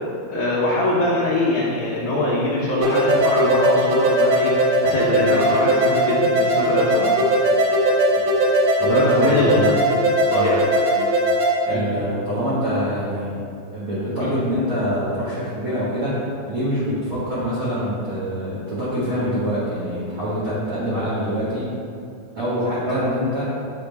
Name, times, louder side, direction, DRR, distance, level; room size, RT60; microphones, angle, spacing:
voice 1, 0.3-4.6 4.8-7.1 8.9-9.8 10.3-10.6 11.7-11.9 14.2-14.3 22.8-23.0, left 1 dB, 80° left, -9 dB, 1.6 m, -22 dB
sound 1, 2.8-11.5, right 1 dB, 80° right, 2.9 m, -19 dB
voice 2, 8.8-9.8 10.3-10.7 11.7-13.3 13.7-21.7 22.3-23.5, equal, 50° right, -13 dB, 1.6 m, -25 dB
9.8 x 3.8 x 3.4 m, 2.5 s
omnidirectional pair, 4.7 m